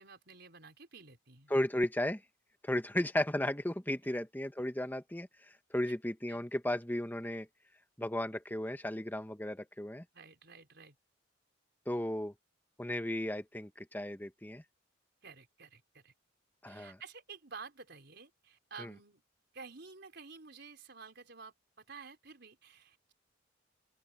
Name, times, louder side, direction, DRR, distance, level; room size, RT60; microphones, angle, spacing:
voice 1, 0.0-1.5 6.3-6.4 10.1-11.0 15.2-16.1 16.7-19.2 19.5-23.1, right 5 dB, 60° right, 4.8 m, -51 dB
voice 2, 1.5-2.2 2.6-5.3 5.7-7.5 8.0-10.0 11.9-12.3 12.8-14.6 16.6-17.0 18.8-18.9, left 1 dB, 10° left, 1.2 m, -34 dB
head